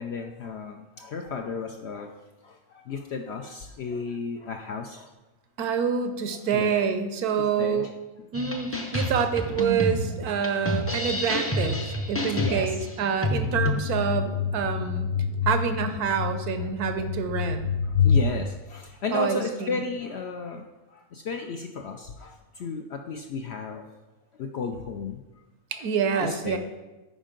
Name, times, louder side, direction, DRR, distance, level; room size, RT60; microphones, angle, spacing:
voice 1, 0.0-2.2 2.4-5.1 6.5-6.7 7.6-7.9 12.4-12.8 16.6-16.7 17.8-23.9 24.4-25.2 26.2-26.6, left 4 dB, 70° left, 4 dB, 0.6 m, -34 dB
voice 2, 5.6-7.9 8.3-15.1 15.5-17.7 19.1-19.8 25.7-26.6, right 7 dB, 80° right, 8 dB, 1.2 m, -27 dB
sound 1, 8.3-13.8, equal, 20° left, 0.4 m, -28 dB
creepy ambience, 13.2-18.3, left 6 dB, 85° left, 1.1 m, -27 dB
8.9 x 5.1 x 3.8 m, 1.1 s
omnidirectional pair, 1.6 m